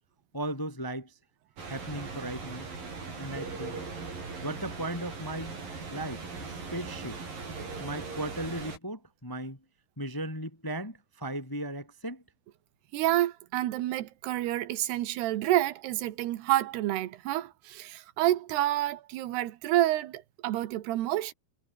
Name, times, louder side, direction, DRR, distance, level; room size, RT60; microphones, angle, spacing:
voice 1, 0.3-1.1 1.7-2.7 3.2-3.8 4.4-5.5 5.9-7.2 7.8-9.6 10.0-12.2, right 1 dB, 10° left, 1.4 m, -36 dB
sound 1, 1.6-8.8, right 4 dB, 60° right, 8.5 m, -39 dB
voice 2, 12.9-21.3, right 14 dB, 85° right, 3.3 m, -28 dB
omnidirectional pair, 4.6 m